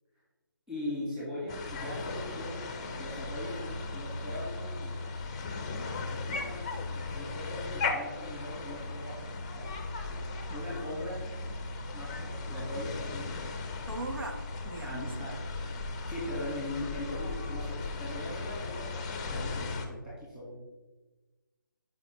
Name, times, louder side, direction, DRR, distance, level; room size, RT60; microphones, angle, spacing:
voice 1, 0.7-2.6 3.0-5.0 5.9-9.2 9.6-9.7 10.5-11.2 11.9-13.3 14.8-15.4 16.1-20.6, left 1 dB, 5° right, -8 dB, 1.6 m, -40 dB
sound 1, 1.5-19.9, left 3 dB, 20° left, 0.5 m, -37 dB
voice 2, 13.9-15.3, right 2 dB, 80° right, 4 dB, 1.2 m, -40 dB
10.5 x 5.0 x 3.0 m, 1.2 s
figure-of-eight pair, 165°, 11 cm